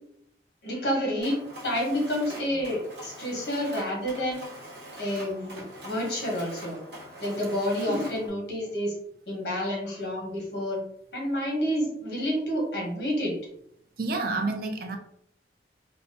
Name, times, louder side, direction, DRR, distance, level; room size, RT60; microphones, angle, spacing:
voice 1, 0.6-1.4 1.6-4.6 5.0-6.8 7.2-8.9 9.3-10.8 11.1-13.3, equal, 65° left, -3 dB, 1.1 m, -29 dB
Mechanisms, 1.2-8.3, right 1 dB, 75° right, 0.9 m, -43 dB
voice 2, 14.0-15.0, right 3 dB, 55° right, 4 dB, 0.4 m, -29 dB
2.8 x 2.2 x 2.6 m, 0.72 s
head